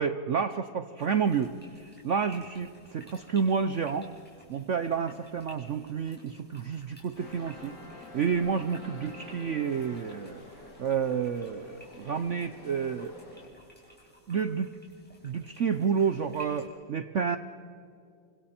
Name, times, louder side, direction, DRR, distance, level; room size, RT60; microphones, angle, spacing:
voice 1, 0.0-4.1 4.5-10.4 10.8-13.2 14.3-14.7 15.2-17.4, right 6 dB, 65° right, 10 dB, 0.7 m, -30 dB
sound 1, 1.0-16.7, left 1 dB, 5° left, 4.7 m, -55 dB
sound 2, 7.2-13.5, left 1 dB, 60° left, 4.0 m, -48 dB
29.0 x 24.5 x 4.4 m, 2.5 s
omnidirectional pair, 2.1 m